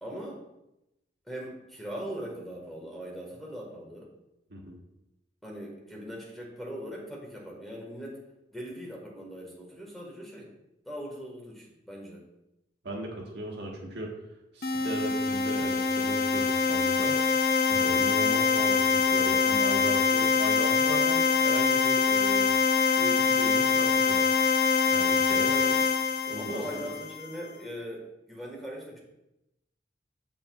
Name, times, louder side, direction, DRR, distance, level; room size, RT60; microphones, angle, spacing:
voice 1, 0.0-0.4 1.3-4.1 5.4-8.2 8.5-10.5 10.8-12.2 17.7-18.0 25.5-25.8 26.4-29.0, equal, ahead, -3 dB, 1.4 m, -40 dB
voice 2, 12.8-14.2 14.5-17.2 17.7-22.5 22.9-24.3 24.9-25.5 26.3-26.9, right 1 dB, 75° right, 0 dB, 1.4 m, -37 dB
sound 1, 14.6-27.3, left 5 dB, 55° left, 0.5 m, -24 dB
8.7 x 6.7 x 2.3 m, 0.90 s
head